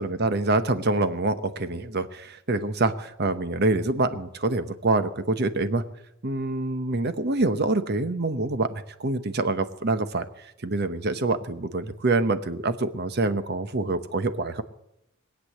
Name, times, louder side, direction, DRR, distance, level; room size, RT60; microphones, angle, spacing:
voice 1, 0.0-5.8 6.2-10.3 10.6-14.6, right 2 dB, 50° right, 11 dB, 1.0 m, -26 dB
22.0 x 8.4 x 7.6 m, 0.85 s
head